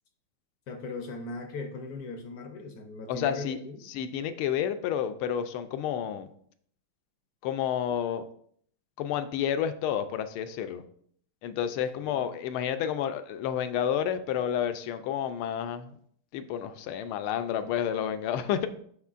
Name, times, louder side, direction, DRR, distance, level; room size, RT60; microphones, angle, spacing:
voice 1, 0.7-3.8 11.6-12.3, left 3 dB, 65° left, 5 dB, 0.9 m, -39 dB
voice 2, 3.1-3.6 3.9-6.3 7.4-8.2 9.0-10.8 11.4-15.9 16.3-18.7, left 9 dB, 80° left, 10 dB, 1.4 m, -30 dB
8.0 x 5.9 x 2.5 m, 0.63 s
omnidirectional pair, 2.4 m